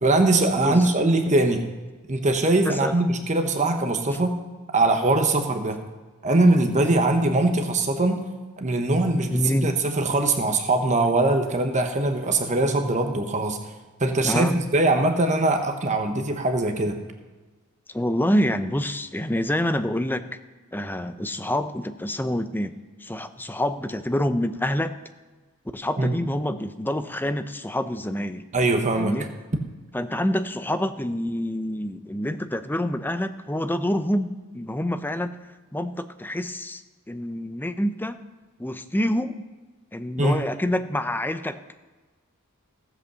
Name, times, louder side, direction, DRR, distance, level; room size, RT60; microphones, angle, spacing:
voice 1, 0.0-1.7 2.1-4.3 4.7-5.8 6.2-8.2 8.6-13.6 14.0-17.0 26.0-26.2 28.5-29.1 40.2-40.4, right 2 dB, 35° right, 5 dB, 1.1 m, -22 dB
voice 2, 0.6-0.9 2.6-2.9 9.3-9.7 14.2-14.6 17.9-20.2 20.7-22.7 23.0-24.9 25.7-28.4 28.9-29.3 29.9-35.4 35.7-36.8 37.1-38.2 38.6-39.4 39.9-41.8, left 1 dB, 10° left, 10 dB, 0.6 m, -27 dB
15.5 x 8.1 x 6.9 m, 1.3 s
head